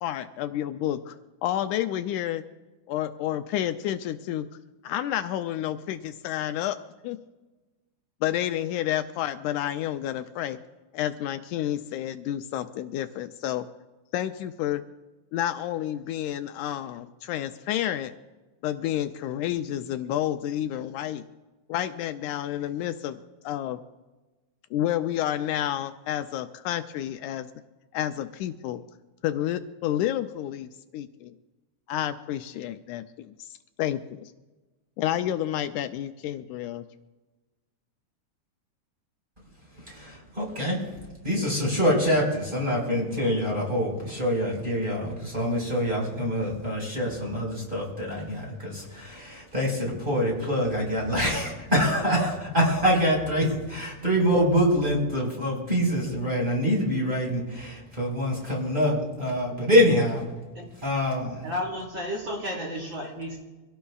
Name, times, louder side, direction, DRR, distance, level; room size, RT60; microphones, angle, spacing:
voice 1, 0.0-1.2 1.4-2.4 2.9-4.5 4.8-6.8 7.0-7.2 8.2-10.6 10.9-13.7 14.1-14.8 15.3-18.1 18.6-21.2 21.7-23.8 24.7-27.5 27.9-28.8 29.2-31.3 31.9-34.3 35.0-36.9, left 12 dB, 80° left, 9 dB, 2.0 m, -30 dB
voice 2, 39.7-40.9 41.2-60.3 60.8-61.4, equal, 15° right, -2 dB, 5.0 m, -25 dB
voice 3, 61.4-63.4, equal, 40° right, -2 dB, 3.1 m, -32 dB
25.0 x 17.0 x 2.4 m, 1.2 s
omnidirectional pair, 3.6 m